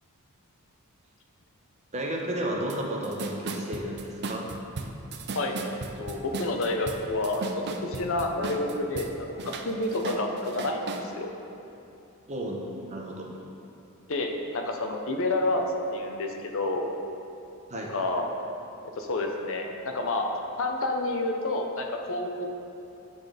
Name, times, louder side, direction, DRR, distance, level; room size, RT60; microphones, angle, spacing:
voice 1, 1.9-4.5 12.3-12.6 12.9-13.3 17.7-17.9, right 1 dB, 30° right, -1 dB, 0.9 m, -32 dB
sound 1, 2.7-2.8 3.0-9.1 9.4-11.1, right 3 dB, 50° right, 0.5 m, -36 dB
voice 2, 5.3-7.4 7.8-11.3 14.1-15.6 15.9-16.8 17.9-18.3 19.0-20.3 20.6-22.4, left 2 dB, 65° left, 3 dB, 0.7 m, -29 dB
8.9 x 4.1 x 5.0 m, 2.8 s
head